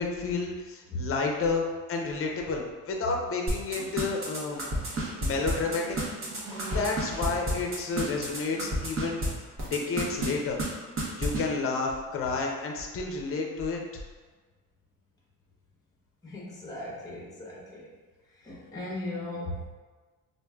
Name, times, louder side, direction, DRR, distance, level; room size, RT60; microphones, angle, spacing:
voice 1, 0.0-4.6 5.2-6.0 6.7-9.2 9.6-10.6 11.2-13.8, left 4 dB, 40° left, 1 dB, 0.6 m, -30 dB
sound 1, 3.5-9.3 9.6-10.3 10.6-10.7 11.0-11.4, right 1 dB, 40° right, 0.9 m, -30 dB
sound 2, 4.5-9.6, right 2 dB, 70° right, 0.8 m, -45 dB
voice 2, 16.2-17.9 18.4-19.7, left 1 dB, 10° left, -5 dB, 0.9 m, -37 dB
4.6 x 2.5 x 2.3 m, 1.3 s
cardioid pair, 125°, 34 cm